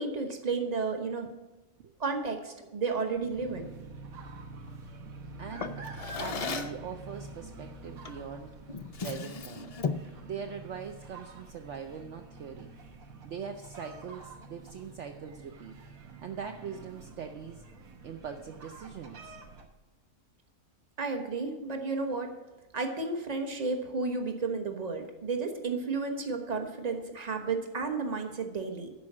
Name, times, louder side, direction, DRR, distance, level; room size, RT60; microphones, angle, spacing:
voice 1, 0.0-1.4 2.0-3.7 21.0-22.4 22.7-28.9, right 4 dB, 30° right, 5 dB, 1.2 m, -32 dB
sound 1, 3.3-19.6, right 3 dB, 80° right, 1.6 m, -47 dB
voice 2, 5.4-5.9 6.1-8.5 9.0-9.7 10.2-12.7 13.2-15.8 16.2-17.6 18.0-19.4, right 7 dB, 65° right, 4 dB, 0.9 m, -41 dB
Drawer open or close, 5.6-6.9 8.0-8.3 8.7-10.2, left 5 dB, 65° left, 0.3 m, -35 dB
11.5 x 4.8 x 7.3 m, 1.1 s
omnidirectional pair, 1.4 m